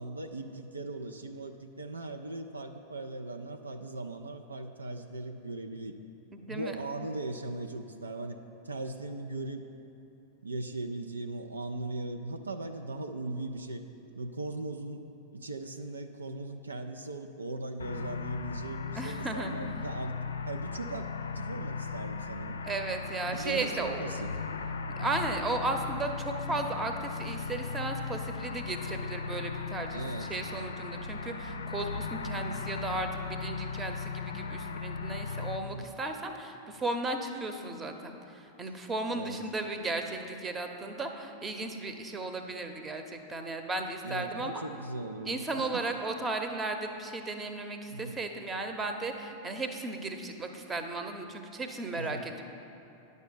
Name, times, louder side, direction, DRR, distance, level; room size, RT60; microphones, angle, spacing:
voice 1, 0.0-6.0 6.5-8.4 8.6-9.7 10.4-13.8 14.1-15.0 15.3-20.2 20.5-21.1 21.3-22.6 23.3-24.3 25.0-25.2 29.9-30.3 32.3-32.5 35.6-35.9 39.1-39.4 44.0-45.4 47.9-48.2 51.9-52.3, right 2 dB, 75° right, 5 dB, 0.5 m, -39 dB
voice 2, 6.3-6.8 18.9-19.5 22.7-24.1 25.0-44.6 45.3-52.4, right 2 dB, 20° right, 6 dB, 0.9 m, -35 dB
sound 1, 17.8-35.6, left 4 dB, 70° left, 0.4 m, -37 dB
9.7 x 6.5 x 6.9 m, 2.8 s
figure-of-eight pair, 90°, 0 cm